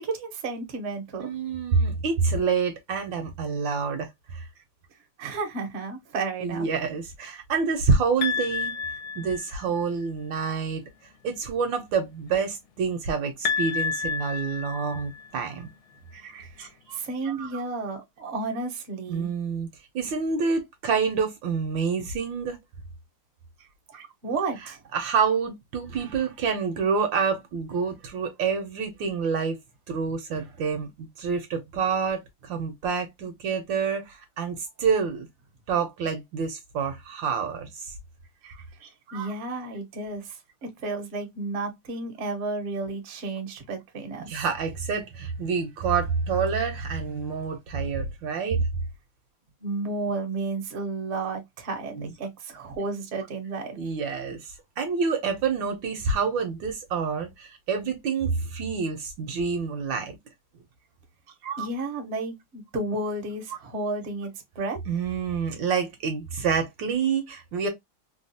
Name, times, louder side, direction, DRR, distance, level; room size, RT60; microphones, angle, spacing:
voice 1, 0.0-1.3 5.2-6.7 16.5-16.6 16.9-19.3 24.2-24.8 39.1-40.4 40.8-44.4 49.6-53.8 61.6-64.3 64.5-64.8, right 3 dB, 50° right, 0.9 m, -32 dB
voice 2, 1.2-4.5 6.4-8.8 9.1-10.8 11.2-15.7 16.1-17.6 19.1-19.7 19.9-22.6 23.9-24.1 24.9-29.6 29.9-35.3 35.7-37.9 38.4-39.3 44.3-48.6 51.9-52.1 53.8-60.2 61.4-61.7 64.9-67.7, right 5 dB, 70° right, 1.3 m, -28 dB
sound 1, 8.2-9.9 13.5-15.5, left 6 dB, 85° left, 1.5 m, -30 dB
3.4 x 2.3 x 2.6 m
omnidirectional pair, 2.3 m